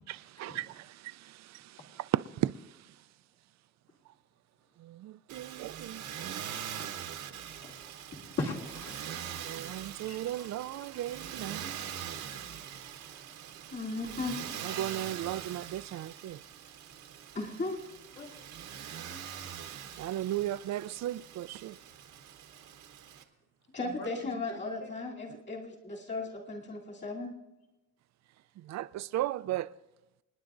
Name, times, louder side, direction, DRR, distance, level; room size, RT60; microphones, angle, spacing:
voice 1, 0.1-2.5 4.8-6.4 9.5-11.7 14.6-16.4 20.0-21.8 28.6-29.7, right 14 dB, 65° right, 0.4 m, -36 dB
Motor vehicle (road), 5.3-23.2, right 9 dB, 85° right, 1.2 m, -43 dB
voice 2, 7.4-7.7 8.4-9.0 10.1-10.2 12.1-12.6 18.2-18.4 23.8-24.6, left 2 dB, 55° left, 2.8 m, -39 dB
voice 3, 13.7-14.4 17.3-17.8 23.7-27.3, left 3 dB, 35° left, 3.0 m, -36 dB
28.0 x 9.8 x 2.6 m
cardioid pair, 90°, 30 cm